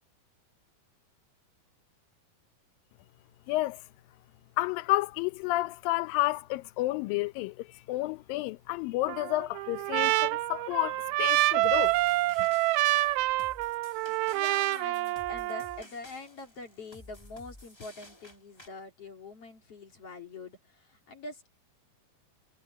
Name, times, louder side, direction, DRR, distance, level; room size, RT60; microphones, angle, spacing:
voice 1, 3.5-3.8 4.6-7.6 7.9-12.0 12.4-12.5, left 18 dB, 75° left, 2.3 m, -30 dB
Trumpet, 9.1-15.8, right 19 dB, 85° right, 2.5 m, -27 dB
sound 1, 11.6-18.7, left 1 dB, 20° left, 0.6 m, -53 dB
voice 2, 14.3-21.5, left 3 dB, 40° left, 3.3 m, -44 dB
omnidirectional pair, 4.4 m